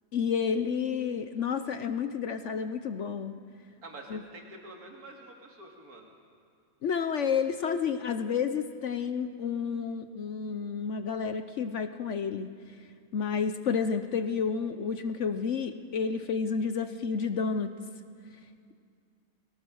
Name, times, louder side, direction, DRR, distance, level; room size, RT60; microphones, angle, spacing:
voice 1, 0.1-3.4 4.1-4.2 6.8-12.5 13.1-17.7, left 6 dB, 55° left, 9 dB, 1.0 m, -30 dB
voice 2, 3.8-6.1, right 2 dB, 65° right, 1 dB, 2.8 m, -47 dB
22.0 x 18.5 x 6.3 m, 2.3 s
omnidirectional pair, 1.7 m